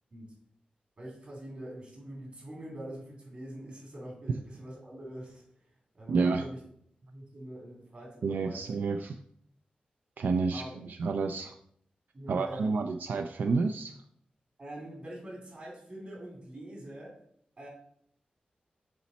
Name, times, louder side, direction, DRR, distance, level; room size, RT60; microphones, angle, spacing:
voice 1, 1.0-5.4 5.9-6.6 7.0-8.7 10.5-10.8 12.1-12.7 14.6-17.2 17.6-17.7, right 1 dB, 45° right, -2 dB, 2.7 m, -44 dB
voice 2, 6.1-6.5 8.2-9.2 10.2-11.6 12.3-13.9, right 4 dB, 85° right, 7 dB, 0.3 m, -29 dB
7.0 x 4.1 x 4.2 m, 0.67 s
wide cardioid pair, 130°, 3 cm